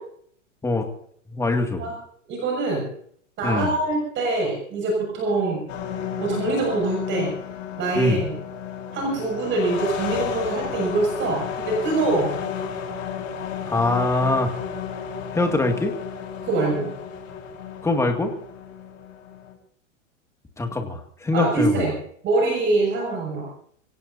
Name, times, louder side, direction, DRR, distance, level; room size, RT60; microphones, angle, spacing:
voice 1, 1.3-1.9 3.4-3.7 7.9-8.2 13.7-14.5 15.3-15.9 17.8-18.3 20.6-21.9, left 2 dB, 5° left, 3 dB, 2.2 m, -23 dB
voice 2, 2.3-2.9 3.4-5.6 6.2-7.3 7.8-8.3 8.9-12.3 16.4-16.9 21.3-21.9 22.2-23.5, right 2 dB, 30° right, 0 dB, 6.7 m, -24 dB
sound 1, 5.7-19.5, left 7 dB, 80° left, 4.5 m, -32 dB
26.5 x 17.5 x 2.7 m, 0.62 s
supercardioid pair, 145°, 38 cm